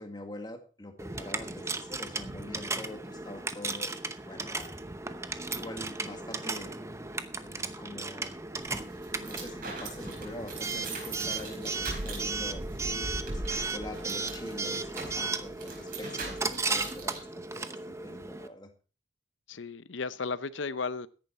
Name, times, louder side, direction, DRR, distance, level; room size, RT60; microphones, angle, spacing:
voice 1, 0.0-4.8 5.5-6.7 7.3-8.4 9.2-12.6 13.3-18.7, left 1 dB, 20° left, 1.9 m, -44 dB
Coin (dropping) / Alarm, 1.0-18.5, right 3 dB, 15° right, 0.8 m, -36 dB
sound 1, 8.6-17.2, right 2 dB, 45° right, 4.7 m, -41 dB
voice 2, 12.8-13.2 19.5-21.1, left 4 dB, 65° left, 0.7 m, -35 dB
14.0 x 10.5 x 4.2 m
head